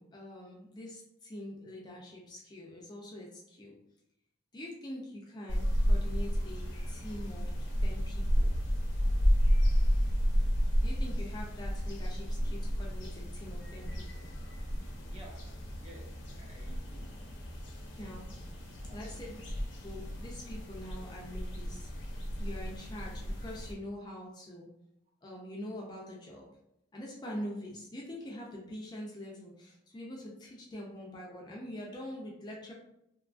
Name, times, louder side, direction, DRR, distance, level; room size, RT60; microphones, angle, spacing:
voice 1, 0.0-3.7 4.5-7.5 7.8-8.5 10.8-14.3 18.0-18.2 18.9-19.4 19.8-21.9 22.4-24.7 25.2-26.5 26.9-32.7, left 1 dB, 20° left, -2 dB, 0.3 m, -44 dB
sound 1, 5.5-23.7, equal, 70° left, 0.6 m, -32 dB
voice 2, 15.1-17.2 17.8-18.2 18.8-19.4, right 1 dB, 30° right, -2 dB, 0.6 m, -55 dB
2.9 x 2.3 x 2.4 m, 0.83 s
head